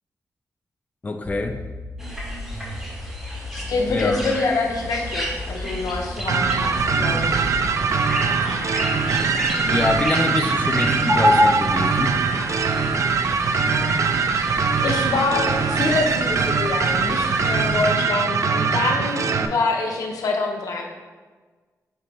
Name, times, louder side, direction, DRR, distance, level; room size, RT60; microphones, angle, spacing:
voice 1, 1.0-1.6 3.9-4.2 9.6-12.1, left 3 dB, 25° left, 5 dB, 0.4 m, -25 dB
sound 1, 1.3-4.3 4.7-7.7, left 1 dB, 20° right, 0.8 m, -35 dB
sound 2, 2.0-17.9, equal, 5° right, 1.8 m, -29 dB
voice 2, 3.5-7.5 13.5-14.1 14.8-20.9, left 3 dB, 90° left, 1 dB, 0.8 m, -26 dB
sound 3, 6.3-19.5, right 5 dB, 60° right, 0.4 m, -22 dB
7.4 x 2.9 x 4.8 m, 1.4 s
wide cardioid pair, 120°, 6 cm